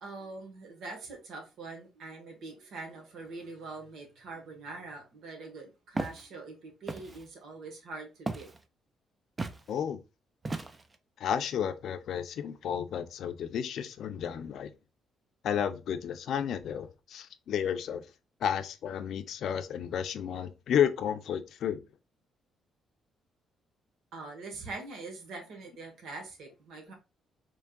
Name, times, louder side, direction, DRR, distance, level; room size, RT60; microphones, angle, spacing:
voice 1, 0.0-8.5 24.1-26.9, right 3 dB, 75° right, 1.4 m, -43 dB
Walk footsteps, 6.0-6.2 6.9-7.2 8.3-8.6 9.4-9.6 10.4-11.0, right 3 dB, 25° right, 0.5 m, -35 dB
voice 2, 9.7-10.0 11.2-14.7 15.4-18.0 18.4-21.8, left 8 dB, 70° left, 0.5 m, -32 dB
4.6 x 3.2 x 2.4 m
cardioid pair, 90°, 0 cm